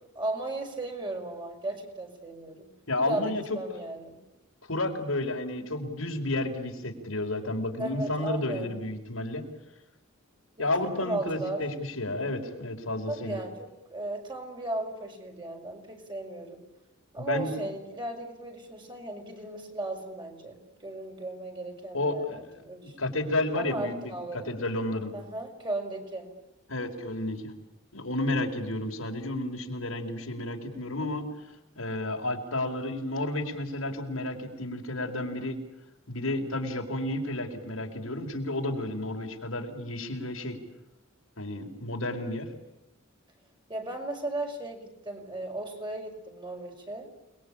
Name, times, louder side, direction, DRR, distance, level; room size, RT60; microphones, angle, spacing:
voice 1, 0.2-2.7 3.0-4.2 7.8-8.7 10.6-11.6 13.1-16.6 17.1-23.1 23.5-24.5 25.1-26.3 43.7-47.1, right 2 dB, 25° right, 2 dB, 5.5 m, -36 dB
voice 2, 2.9-3.4 4.7-9.4 10.6-13.4 17.2-17.7 21.9-22.6 23.0-25.1 26.7-27.5 27.9-31.3 31.8-35.6 36.1-40.6 41.4-42.5, left 2 dB, 85° left, 2 dB, 4.6 m, -31 dB
29.5 x 21.5 x 8.7 m, 0.94 s
head